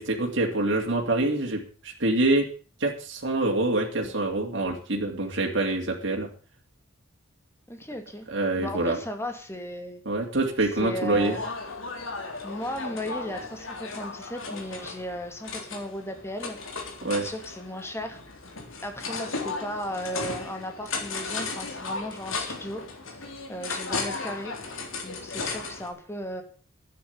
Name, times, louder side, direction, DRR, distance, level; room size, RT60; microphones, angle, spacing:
voice 1, 0.0-2.5 2.8-6.3 8.3-9.0 10.0-11.4 17.0-17.3, right 2 dB, 55° right, 0 dB, 2.7 m, -26 dB
voice 2, 7.7-8.3 8.6-10.0 10.8-11.4 12.4-16.6 17.0-18.2 18.8-22.8 23.1-24.5 25.0-26.4, equal, 10° left, 5 dB, 2.3 m, -36 dB
sound 1, 11.2-25.9, left 3 dB, 70° left, 3.6 m, -35 dB
11.5 x 9.6 x 8.2 m, 0.41 s
head